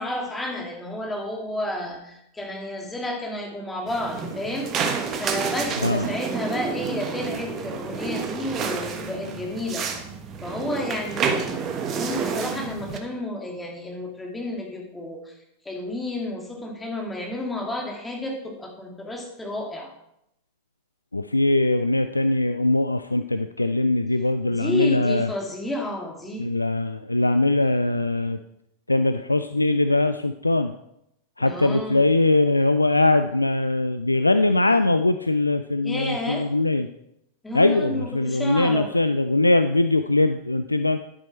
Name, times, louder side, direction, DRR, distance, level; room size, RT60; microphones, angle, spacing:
voice 1, 0.0-4.7 5.1-9.9 10.4-15.3 15.6-19.9 24.5-26.5 31.4-32.0 35.8-36.5 37.4-38.9, left 1 dB, 10° left, 0 dB, 2.6 m, -31 dB
sound 1, 3.9-13.0, right 5 dB, 30° right, 1.2 m, -29 dB
voice 2, 21.1-25.3 26.4-28.4 28.9-30.7 31.4-36.9 37.5-41.0, left 2 dB, 85° left, 10 dB, 0.4 m, -21 dB
10.5 x 8.3 x 4.4 m, 0.80 s
figure-of-eight pair, 90°, 0 cm